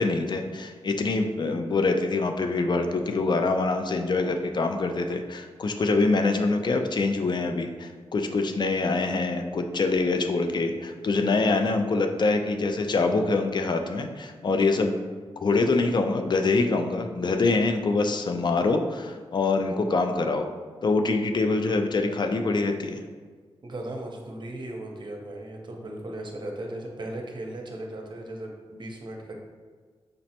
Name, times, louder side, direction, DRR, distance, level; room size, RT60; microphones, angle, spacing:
voice 1, 0.0-15.0 15.4-20.5 20.8-23.0, left 3 dB, 45° left, 5 dB, 0.4 m, -25 dB
voice 2, 23.6-29.3, right 1 dB, 50° right, 1 dB, 0.6 m, -37 dB
5.1 x 2.0 x 2.8 m, 1.5 s
cardioid pair, 60°, 10 cm